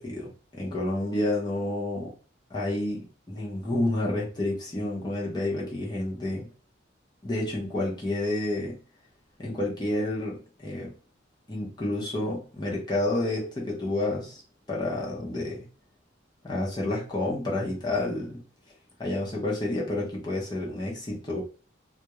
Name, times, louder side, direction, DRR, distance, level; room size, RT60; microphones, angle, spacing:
voice 1, 0.0-2.1 2.5-6.5 7.2-8.7 9.4-10.9 11.5-14.4 14.7-15.6 16.4-18.4 19.0-21.4, left 1 dB, 20° left, -4 dB, 0.6 m, -29 dB
2.3 x 2.1 x 2.9 m, 0.38 s
head